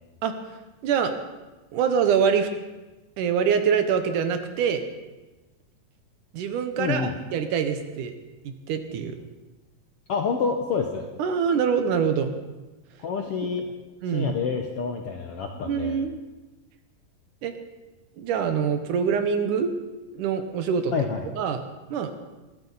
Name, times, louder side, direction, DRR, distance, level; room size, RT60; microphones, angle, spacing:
voice 1, 1.7-2.5 3.2-4.8 6.3-8.1 8.4-9.2 11.2-12.3 13.5-13.6 14.0-14.4 15.6-16.2 17.4-17.5 18.2-19.7 20.1-20.9 21.4-21.6 21.9-22.1, right 7 dB, 75° right, 8 dB, 2.5 m, -24 dB
voice 2, 6.8-7.2 10.1-11.1 13.0-13.7 14.1-16.0 20.9-21.2, left 5 dB, 70° left, 3 dB, 1.4 m, -28 dB
21.0 x 14.0 x 4.0 m, 1.1 s
omnidirectional pair, 3.8 m